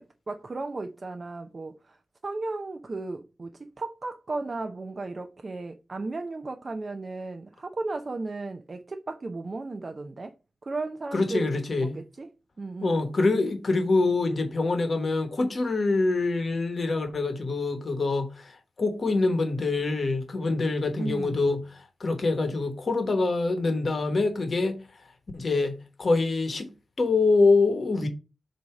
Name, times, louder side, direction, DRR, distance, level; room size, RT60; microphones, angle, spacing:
voice 1, 0.0-10.4 10.6-12.3 12.6-13.0 21.0-21.4, right 3 dB, 30° right, 0.5 m, -35 dB
voice 2, 11.1-12.0 12.8-24.8 25.3-26.7 27.0-28.1, left 3 dB, 40° left, 1.1 m, -25 dB
7.5 x 2.7 x 4.8 m
wide cardioid pair, 145°, 0 cm